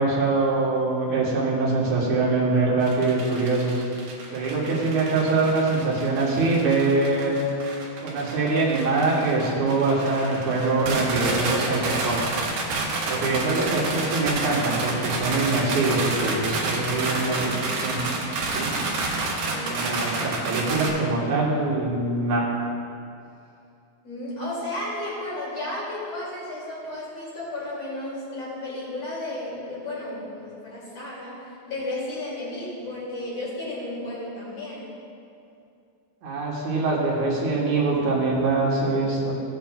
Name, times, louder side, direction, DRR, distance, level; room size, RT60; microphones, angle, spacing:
voice 1, 0.0-3.8 4.3-7.4 8.0-12.2 13.1-18.1 18.5-18.7 19.7-22.4 36.2-39.3, right 3 dB, 60° right, -5 dB, 2.5 m, -23 dB
sound 1, 2.8-20.9, right 3 dB, 80° right, 3.2 m, -29 dB
voice 2, 4.0-4.5 13.1-13.3 19.5-19.8 24.0-31.4 31.7-34.9, left 1 dB, 45° left, -7 dB, 3.3 m, -33 dB
15.5 x 7.6 x 2.4 m, 2.5 s
omnidirectional pair, 4.3 m